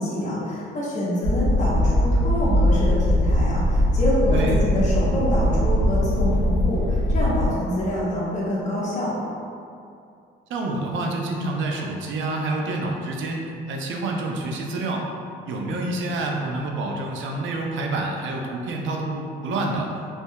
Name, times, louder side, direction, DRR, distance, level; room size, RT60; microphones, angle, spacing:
voice 1, 0.0-9.1, equal, 40° left, -8 dB, 0.8 m, -26 dB
sound 1, 1.2-7.5, left 1 dB, 75° left, 1.0 m, -21 dB
voice 2, 10.5-15.1 15.5-19.9, right 2 dB, 75° right, 0 dB, 0.5 m, -27 dB
3.3 x 2.6 x 2.2 m, 2.5 s
cardioid pair, 90°, 20 cm